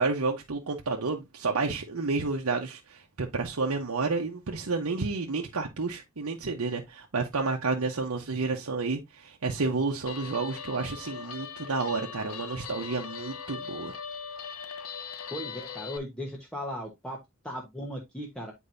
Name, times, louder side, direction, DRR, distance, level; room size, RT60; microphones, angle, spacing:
voice 1, 0.0-13.9, right 4 dB, 80° right, 0.9 m, -30 dB
Guitar, 10.1-16.0, left 6 dB, 85° left, 0.8 m, -40 dB
voice 2, 15.3-17.2 17.4-18.5, equal, 5° left, 1.0 m, -37 dB
8.6 x 4.5 x 2.6 m
head